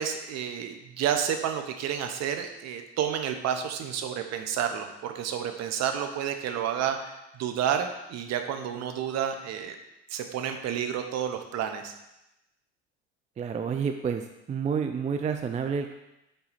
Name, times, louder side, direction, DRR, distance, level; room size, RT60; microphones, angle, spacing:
voice 1, 0.0-9.8 10.1-11.9, right 8 dB, 50° right, 6 dB, 0.9 m, -30 dB
voice 2, 13.4-14.2 14.5-15.9, right 6 dB, 20° right, 6 dB, 0.4 m, -29 dB
6.9 x 3.9 x 4.1 m, 0.92 s
hypercardioid pair, 65°, 33 cm